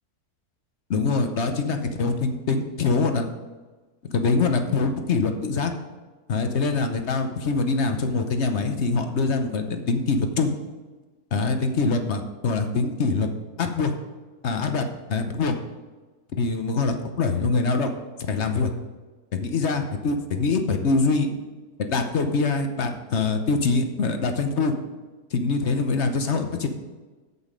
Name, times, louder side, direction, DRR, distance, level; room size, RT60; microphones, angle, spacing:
voice 1, 0.9-3.3 4.0-5.7 6.3-10.5 11.3-13.3 13.6-13.9 14.4-15.5 16.4-17.9 18.3-18.7 19.3-21.3 21.8-24.7 25.3-26.7, left 4 dB, 50° left, 6 dB, 1.0 m, -24 dB
8.2 x 7.9 x 5.1 m, 1.3 s
omnidirectional pair, 1.7 m